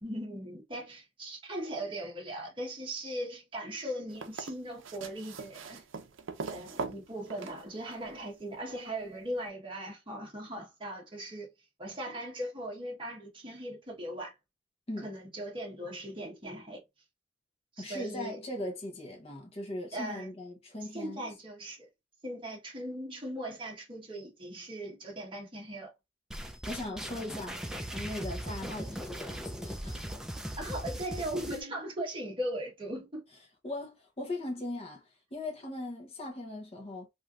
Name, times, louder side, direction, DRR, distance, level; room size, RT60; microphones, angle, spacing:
voice 1, 0.0-5.8 6.5-11.5 11.8-14.3 15.0-16.8 17.7-18.4 19.9-20.3 20.9-21.9 22.2-25.9 30.6-33.3, right 1 dB, 25° right, 1.1 m, -39 dB
sound 1, 4.1-8.2 9.5-9.6, right 4 dB, 80° right, 0.5 m, -41 dB
voice 2, 17.8-21.2 26.7-27.6 27.9-30.0 33.6-37.1, left 1 dB, 30° left, 0.8 m, -39 dB
sound 2, 26.3-31.6, equal, 5° right, 0.3 m, -39 dB
3.2 x 2.7 x 2.4 m
head